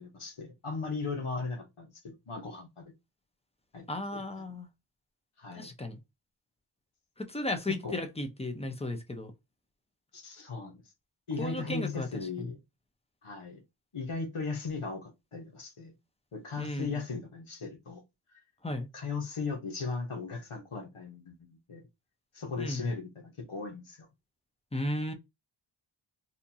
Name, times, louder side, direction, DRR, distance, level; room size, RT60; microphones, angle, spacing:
voice 1, 0.0-2.9 3.7-3.9 4.1-4.2 5.4-5.7 7.7-8.0 10.1-10.8 11.3-12.6 13.2-13.6 13.9-15.9 16.3-18.0 18.3-18.4 18.9-21.9 22.3-24.1, left 4 dB, 90° left, 1.2 m, -37 dB
voice 2, 3.9-4.7 5.5-6.0 7.2-9.3 11.4-12.1 12.4-12.5 16.6-16.9 18.6-18.9 22.6-22.9 24.7-25.1, left 1 dB, 10° left, 0.8 m, -35 dB
4.3 x 2.7 x 2.7 m
wide cardioid pair, 45°, 49 cm